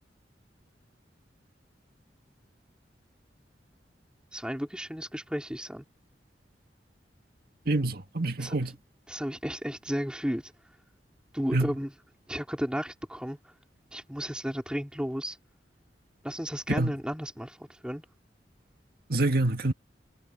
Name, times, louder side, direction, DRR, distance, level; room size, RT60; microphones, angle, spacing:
voice 1, 4.3-5.8 8.4-8.6 9.1-10.5 11.3-11.9 12.3-13.4 13.9-15.4 16.2-17.6 17.8-18.0, equal, 5° right, 3.6 m, -33 dB
voice 2, 7.7-8.8 11.5-11.7 16.7-16.9 19.1-19.7, right 2 dB, 60° right, 1.9 m, -26 dB
head